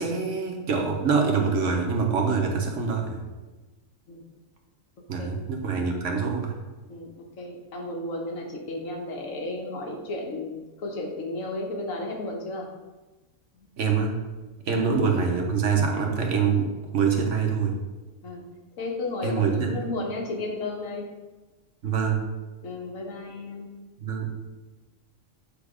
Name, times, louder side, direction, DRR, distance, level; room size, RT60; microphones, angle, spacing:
voice 1, 0.0-3.2 5.1-6.5 13.8-14.2 14.7-17.7 19.2-19.7 21.8-22.2 24.0-24.3, right 5 dB, 70° right, 2 dB, 1.2 m, -25 dB
voice 2, 5.0-5.4 6.9-12.7 13.6-13.7 14.7-14.9 18.2-18.5 18.8-21.1 22.6-23.7, left 2 dB, 80° left, 1 dB, 1.4 m, -34 dB
8.2 x 3.0 x 4.8 m, 1.2 s
omnidirectional pair, 1.4 m